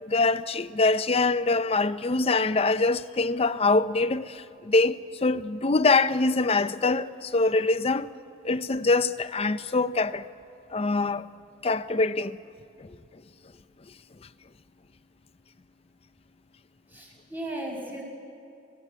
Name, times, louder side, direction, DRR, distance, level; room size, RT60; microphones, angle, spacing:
voice 1, 0.0-8.1 8.4-10.3 10.7-11.3 11.6-12.4 12.8-13.0, left 3 dB, 35° left, 0.6 m, -24 dB
voice 2, 16.9-18.0, right 1 dB, 10° right, 6.2 m, -36 dB
27.0 x 16.5 x 8.4 m
head